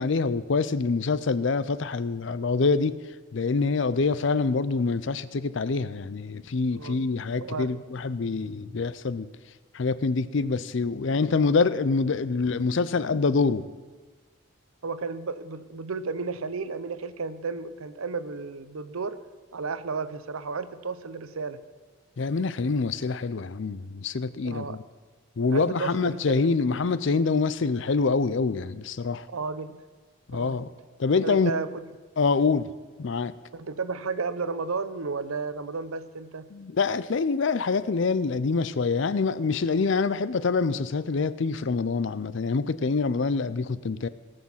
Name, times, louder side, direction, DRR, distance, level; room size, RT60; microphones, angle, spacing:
voice 1, 0.0-3.0 3.3-9.3 9.7-13.7 22.2-24.8 25.4-29.2 30.3-30.7 31.0-31.5 32.2-32.7 33.0-33.3 36.5-44.1, left 4 dB, 60° left, 16 dB, 0.5 m, -25 dB
voice 2, 7.4-7.7 14.8-19.2 19.5-21.6 24.4-24.8 25.5-26.4 29.3-29.8 30.3-30.6 31.2-31.9 33.5-36.5, right 4 dB, 80° right, 13 dB, 0.7 m, -33 dB
18.5 x 6.4 x 7.3 m, 1.4 s
head